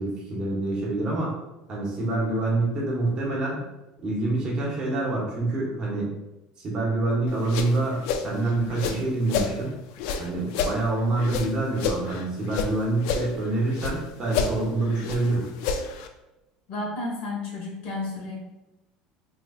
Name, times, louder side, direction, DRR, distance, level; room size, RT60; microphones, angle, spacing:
voice 1, 0.0-1.3 1.7-3.6 4.0-6.1 6.6-9.7 10.2-15.5, right 2 dB, 35° right, -3 dB, 1.1 m, -26 dB
sound 1, 7.3-9.6 10.0-12.7 13.0-14.0 14.3-16.1, left 5 dB, 75° left, 0.4 m, -29 dB
voice 2, 16.7-18.4, left 2 dB, 55° left, -2 dB, 1.3 m, -32 dB
3.9 x 3.1 x 2.4 m, 0.97 s
cardioid pair, 135°, 2 cm